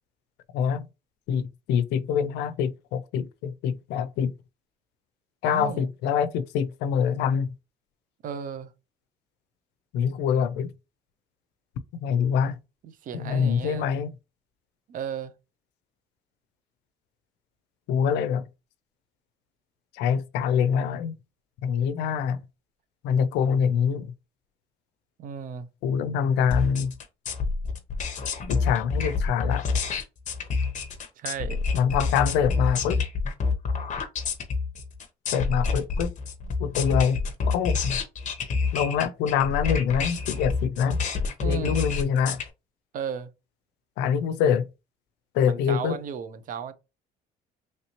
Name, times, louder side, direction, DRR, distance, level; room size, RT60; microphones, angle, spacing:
voice 1, 0.5-0.9 1.3-4.3 5.4-7.5 9.9-10.7 12.0-12.6 13.1-14.1 17.9-18.4 19.9-21.1 21.6-22.4 23.0-24.1 25.8-26.9 28.5-29.7 31.7-33.0 35.3-36.1 36.6-38.0 38.7-41.0 41.4-42.4 44.0-44.7 45.3-46.0, left 7 dB, 90° left, 0.4 m, -25 dB
voice 2, 5.4-5.9 8.2-8.7 12.8-13.9 14.9-15.3 25.2-25.7 31.2-31.6 41.4-41.8 42.9-43.3 45.4-46.7, right 7 dB, 55° right, 0.5 m, -34 dB
sound 1, 26.5-42.5, left 4 dB, 45° left, 0.8 m, -28 dB
3.1 x 2.8 x 2.8 m
cardioid pair, 110°, 17 cm